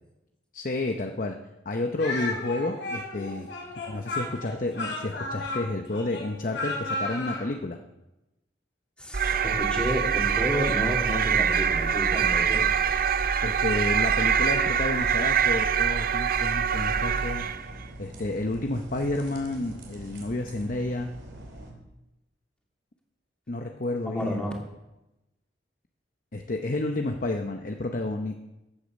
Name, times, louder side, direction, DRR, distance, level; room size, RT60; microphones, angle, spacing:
voice 1, 0.5-1.4 1.6-3.5 3.9-7.8 13.4-17.5 18.0-21.1 23.5-24.4 26.3-28.4, left 2 dB, 50° left, 5 dB, 0.8 m, -30 dB
Speech, 2.0-7.5, left 2 dB, 80° left, 5.5 m, -33 dB
voice 2, 9.0-12.6 24.0-24.6, equal, 5° left, -1 dB, 2.5 m, -31 dB
sound 1, 9.1-17.7, right 7 dB, 55° right, 0.6 m, -24 dB
sound 2, 16.7-21.7, right 1 dB, 80° right, 3.1 m, -44 dB
15.0 x 8.5 x 6.4 m, 0.96 s
head